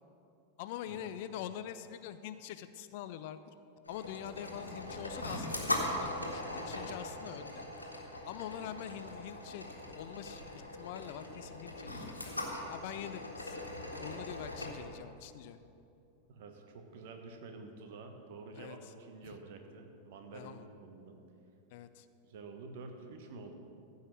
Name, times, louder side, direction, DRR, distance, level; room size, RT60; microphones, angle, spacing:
voice 1, 0.6-3.4 3.9-7.7 8.3-10.4 10.7-12.3 12.7-13.6 14.0-15.6 18.5-18.9 19.2-19.4 20.3-20.7 21.7-22.1, left 11 dB, 50° left, 12 dB, 0.4 m, -44 dB
sound 1, 3.8-14.7, left 1 dB, 85° left, 1.6 m, -40 dB
voice 2, 16.3-21.2 22.2-23.5, right 3 dB, 50° right, 5 dB, 1.3 m, -49 dB
14.5 x 5.6 x 7.5 m, 2.7 s
figure-of-eight pair, 90°, 0 cm